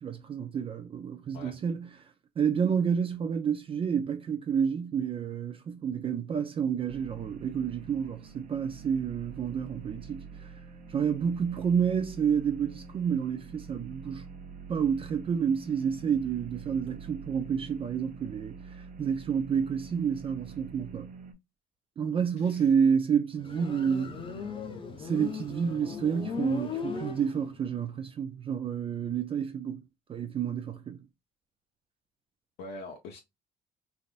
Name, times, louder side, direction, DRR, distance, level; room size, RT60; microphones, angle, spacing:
voice 1, 0.0-1.9 2.4-10.5 10.9-14.3 14.7-21.1 22.0-24.1 25.0-29.8 30.1-31.0, right 7 dB, 35° right, 0.4 m, -29 dB
sound 1, 6.9-21.3, right 5 dB, 50° right, 0.8 m, -46 dB
voice 2, 22.4-22.7 32.6-33.2, left 2 dB, 75° left, 0.7 m, -43 dB
Motorcycle, 23.4-27.7, left 4 dB, 30° left, 0.7 m, -37 dB
3.3 x 2.6 x 2.4 m
cardioid pair, 110°, 17 cm